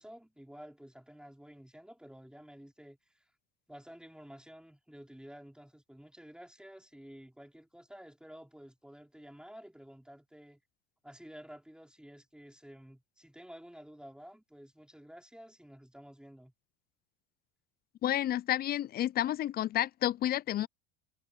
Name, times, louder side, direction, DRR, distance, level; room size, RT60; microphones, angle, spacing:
voice 1, 0.0-3.3 3.7-10.6 11.0-16.5, equal, ahead, 4.8 m, -52 dB
voice 2, 18.0-20.7, left 12 dB, 30° left, 0.4 m, -30 dB
hypercardioid pair, 95°, 36 cm